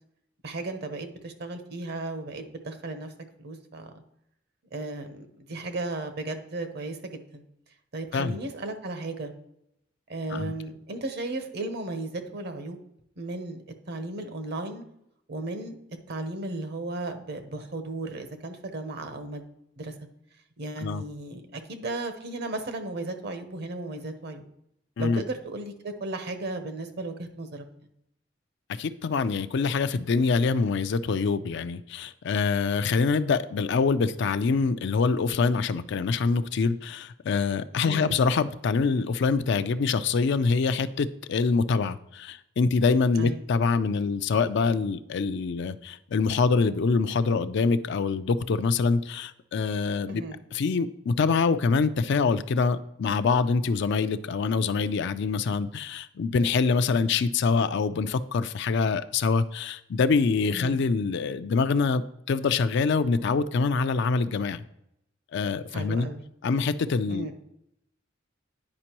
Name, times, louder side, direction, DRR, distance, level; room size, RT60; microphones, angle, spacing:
voice 1, 0.4-3.1 3.4-3.9 4.7-7.4 7.9-9.3 10.1-12.8 13.2-14.8 15.3-15.8 16.1-19.4 19.8-19.9 20.6-24.4 25.0-27.6 37.8-38.2 43.2-43.4 50.1-50.4 60.5-60.8 65.7-66.2 67.1-67.3, right 2 dB, 55° right, 8 dB, 0.8 m, -35 dB
voice 2, 28.8-50.2 50.5-64.6 65.3-66.1 66.4-67.3, left 4 dB, 65° left, 12 dB, 0.4 m, -25 dB
9.7 x 5.2 x 3.0 m, 0.79 s
head